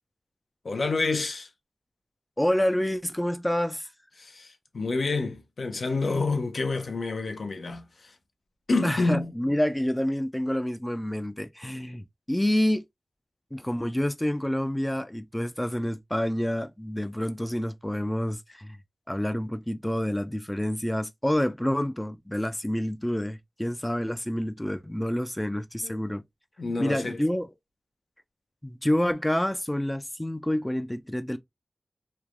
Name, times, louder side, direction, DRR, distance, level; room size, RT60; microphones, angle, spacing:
voice 1, 0.6-1.5 4.2-8.1 8.7-9.3 25.8-26.0 26.6-27.2, left 3 dB, 70° left, 0.6 m, -28 dB
voice 2, 2.4-3.9 8.8-12.8 13.5-18.8 19.1-26.2 26.8-27.5 28.6-31.4, left 1 dB, 10° left, 0.3 m, -28 dB
3.1 x 2.1 x 2.3 m
wide cardioid pair, 80°, 0 cm